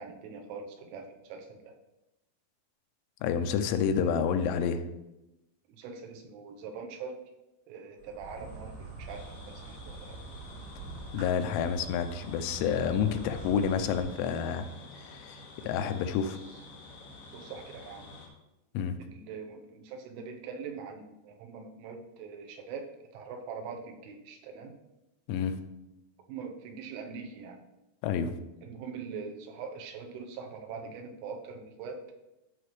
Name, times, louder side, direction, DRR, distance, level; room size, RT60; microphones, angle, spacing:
voice 1, 0.0-1.8 5.7-7.2 7.7-10.2 16.4-16.6 17.3-18.1 19.0-24.7 26.3-27.6 28.6-32.0, right 5 dB, 85° right, 4 dB, 3.5 m, -43 dB
voice 2, 3.2-4.8 11.1-14.7 15.0-16.4 18.7-19.0 25.3-25.6 28.0-28.3, left 7 dB, 85° left, 8 dB, 3.0 m, -29 dB
Insect, 8.0-14.0, right 3 dB, 70° right, 5.8 m, -44 dB
sound 1, 9.1-18.3, left 3 dB, 55° left, 3.2 m, -49 dB
13.0 x 5.9 x 3.2 m, 0.94 s
omnidirectional pair, 5.5 m